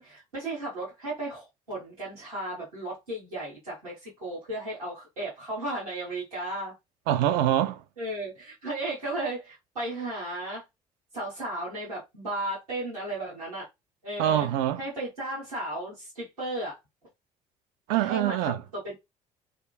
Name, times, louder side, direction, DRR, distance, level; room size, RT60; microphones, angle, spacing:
voice 1, 0.0-6.7 8.0-10.6 11.1-13.7 14.0-14.5 14.8-16.8 17.9-18.9, right 1 dB, 80° right, 1.3 m, -35 dB
voice 2, 7.1-7.8 14.2-14.8 17.9-18.6, right 12 dB, 55° right, 0.4 m, -24 dB
2.8 x 2.4 x 2.3 m
figure-of-eight pair, 50°, 19 cm